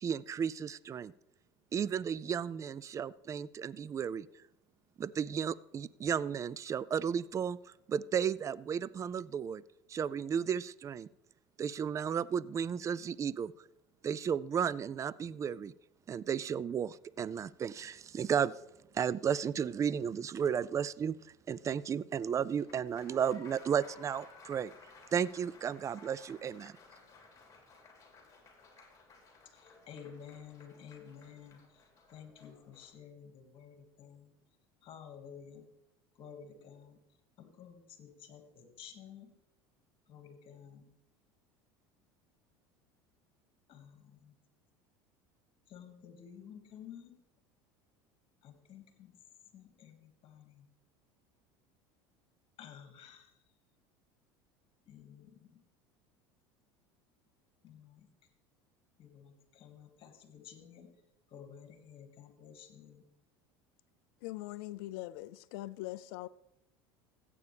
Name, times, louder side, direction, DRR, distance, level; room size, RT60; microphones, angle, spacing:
voice 1, 0.0-1.1 1.7-4.3 5.0-7.6 7.9-9.6 9.9-11.1 11.6-13.5 14.0-15.7 16.1-18.5 18.9-21.2 21.5-24.7 25.1-26.8, right 7 dB, 25° right, 0.3 m, -33 dB
Applause, 22.5-32.9, left 3 dB, 25° left, 3.6 m, -57 dB
voice 2, 29.5-31.8 32.1-34.3 34.8-35.6 36.2-37.0 37.4-39.3 40.1-40.9 43.7-44.4 45.7-47.2 48.4-49.2 49.5-50.7 52.6-53.3 54.8-55.6 57.6-58.1 59.0-60.9 61.3-63.0, left 8 dB, 45° left, 2.1 m, -52 dB
voice 3, 64.2-66.3, left 17 dB, 70° left, 0.4 m, -42 dB
14.5 x 8.5 x 3.4 m
supercardioid pair, 90°, 12 cm